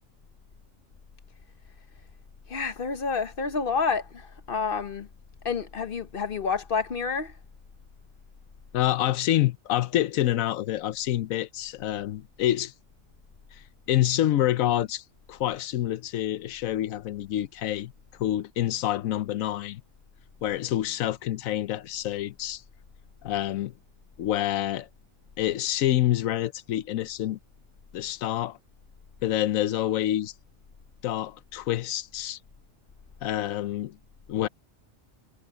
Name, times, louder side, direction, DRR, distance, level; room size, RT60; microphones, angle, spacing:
voice 1, 2.5-5.1 5.4-7.3, left 5 dB, 45° left, 1.0 m, -29 dB
voice 2, 8.7-12.7 13.9-15.0 15.3-17.9 18.2-19.8 20.4-22.6 23.2-23.7 24.2-24.9 25.4-27.4 27.9-28.6 29.2-30.3 31.0-32.4 33.2-34.0 34.3-34.5, left 13 dB, 85° left, 1.1 m, -27 dB
omnidirectional pair, 1.4 m